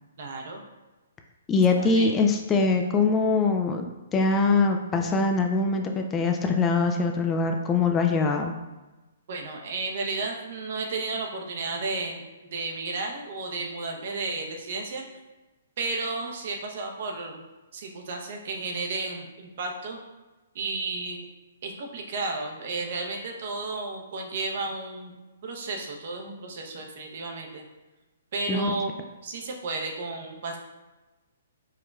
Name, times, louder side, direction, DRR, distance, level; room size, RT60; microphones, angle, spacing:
voice 1, 0.2-0.6 1.7-2.2 9.3-12.2 12.5-15.1 15.8-17.4 17.7-20.0 20.5-21.3 21.6-25.1 25.4-27.6 28.3-28.9 29.2-30.6, right 3 dB, 55° right, 2 dB, 0.7 m, -33 dB
voice 2, 1.5-8.5 28.5-28.7, left 4 dB, 20° left, 4 dB, 0.3 m, -23 dB
4.7 x 3.0 x 2.3 m, 1.1 s
hypercardioid pair, 140°, 0 cm